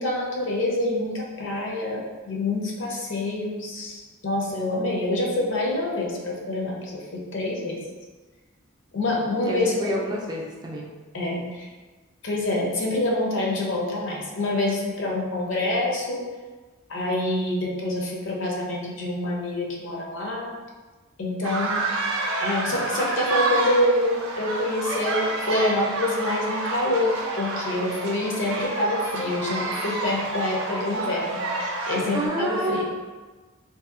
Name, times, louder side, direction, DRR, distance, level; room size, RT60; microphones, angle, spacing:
voice 1, 0.0-7.8 8.9-10.0 11.1-11.7 12.2-16.3 16.9-20.6 21.2-21.8 22.4-32.8, left 1 dB, 65° left, -2 dB, 0.6 m, -26 dB
voice 2, 9.5-10.9 32.1-32.8, right 1 dB, 20° right, -3 dB, 0.3 m, -28 dB
sound 1, 21.4-32.3, right 2 dB, 75° right, 0.5 m, -29 dB
2.8 x 2.7 x 2.4 m, 1.3 s
head